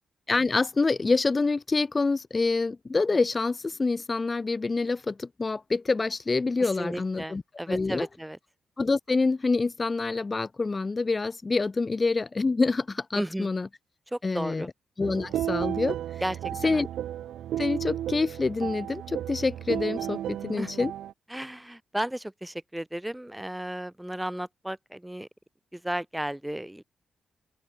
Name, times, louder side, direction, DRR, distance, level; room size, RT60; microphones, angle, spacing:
voice 1, 0.3-7.4 7.7-8.1 8.8-13.7 14.2-14.7 15.0-16.0 16.6-16.9 17.6-20.9, left 3 dB, 35° left, 0.5 m, -26 dB
voice 2, 6.6-8.4 13.1-13.5 14.1-14.7 16.2-16.9 20.6-20.7 21.3-25.3 25.7-26.8, right 1 dB, 10° right, 0.7 m, -34 dB
sound 1, 15.0-21.1, right 11 dB, 80° right, 1.7 m, -33 dB
open air
supercardioid pair, 55°, 0 cm